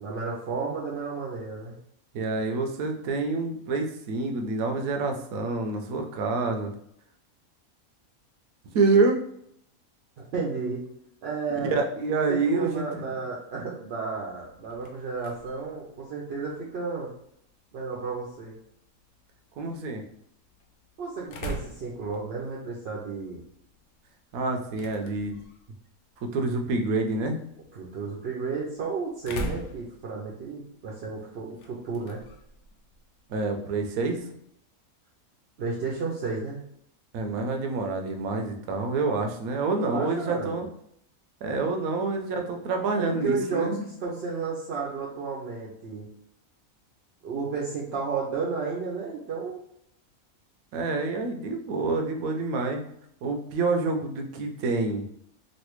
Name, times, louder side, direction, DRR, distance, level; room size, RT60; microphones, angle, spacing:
voice 1, 0.0-1.8 10.2-10.8 11.2-11.8 12.1-17.1 17.7-18.6 21.0-23.4 27.7-32.2 35.6-36.6 39.8-40.6 42.9-46.1 47.2-49.6, right 4 dB, 60° right, -3 dB, 0.7 m, -32 dB
voice 2, 2.1-6.7 8.7-9.2 11.5-12.8 19.6-20.0 24.3-25.4 26.2-27.4 33.3-34.2 37.1-40.7 41.4-43.8 50.7-52.8 53.2-55.0, right 3 dB, 80° right, 4 dB, 1.0 m, -27 dB
sound 1, 14.4-34.3, equal, 90° left, 1.1 m, -45 dB
3.2 x 2.5 x 3.0 m, 0.71 s
omnidirectional pair, 1.5 m